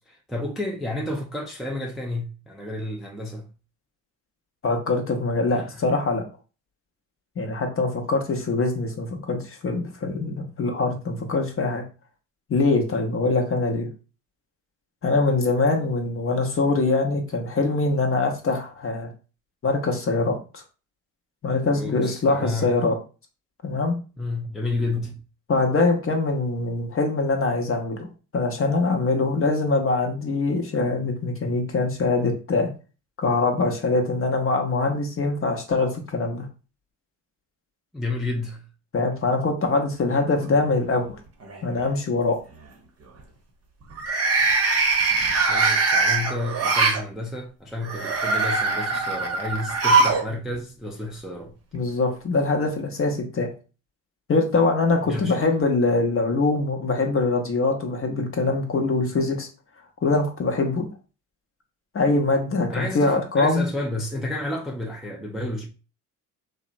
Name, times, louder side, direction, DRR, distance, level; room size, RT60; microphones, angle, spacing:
voice 1, 0.1-3.5 5.5-5.8 21.7-22.7 24.2-25.2 37.9-38.7 44.7-44.9 45.5-51.5 55.0-55.4 62.7-65.7, left 2 dB, ahead, 0.4 m, -31 dB
voice 2, 4.6-6.2 7.4-11.8 12.5-13.9 15.0-19.1 19.6-20.6 21.4-22.9 23.6-23.9 25.5-28.1 28.3-32.7 33.2-36.5 38.9-41.2 41.6-42.4 51.7-53.5 54.3-59.5 60.0-60.9 61.9-63.6, left 3 dB, 30° left, 0.7 m, -23 dB
sound 1, 40.4-41.0 41.4-41.8 43.9-47.0 47.8-50.3 50.5-50.6 51.7-51.8, right 3 dB, 35° right, 0.8 m, -22 dB
2.8 x 2.1 x 2.5 m
hypercardioid pair, 60°, 43 cm